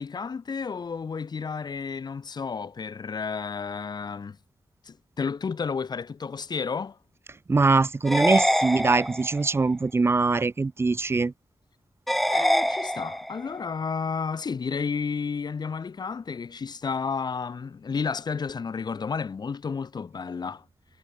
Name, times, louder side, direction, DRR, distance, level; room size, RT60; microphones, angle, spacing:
voice 1, 0.0-4.4 4.8-7.0 12.3-20.6, left 5 dB, 55° left, 2.8 m, -31 dB
voice 2, 7.5-11.3, right 3 dB, 30° right, 0.8 m, -22 dB
sound 1, 8.1-9.5 12.1-13.5, equal, ahead, 0.3 m, -25 dB
wide cardioid pair, 160°, 9 cm